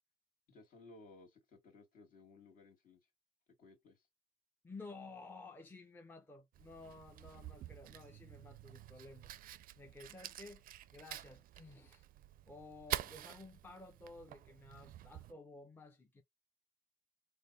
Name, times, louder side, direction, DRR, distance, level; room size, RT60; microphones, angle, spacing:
voice 1, 0.5-3.0 3.6-4.0, left 3 dB, 55° left, 1.9 m, -59 dB
voice 2, 4.6-9.3 9.8-10.6 10.9-12.1 12.5-16.2, left 3 dB, 10° left, 0.6 m, -53 dB
Fire, 6.5-15.3, right 13 dB, 55° right, 0.4 m, -48 dB
3.3 x 2.1 x 4.0 m
cardioid pair, 110°, 17 cm